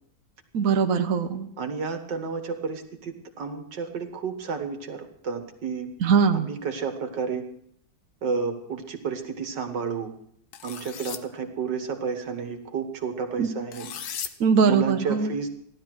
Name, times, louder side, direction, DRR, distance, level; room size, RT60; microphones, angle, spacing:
voice 1, 0.5-1.5 6.0-6.5 13.4-13.5 14.4-15.3, right 5 dB, 55° right, 6 dB, 1.2 m, -21 dB
voice 2, 1.6-5.9 6.3-7.4 8.2-10.1 10.6-13.9 14.7-15.5, right 5 dB, 75° right, 6 dB, 2.2 m, -31 dB
sound 1, 10.5-11.2 13.7-14.3, left 9 dB, 65° left, 1.3 m, -36 dB
15.5 x 12.0 x 6.2 m, 0.68 s
omnidirectional pair, 1.9 m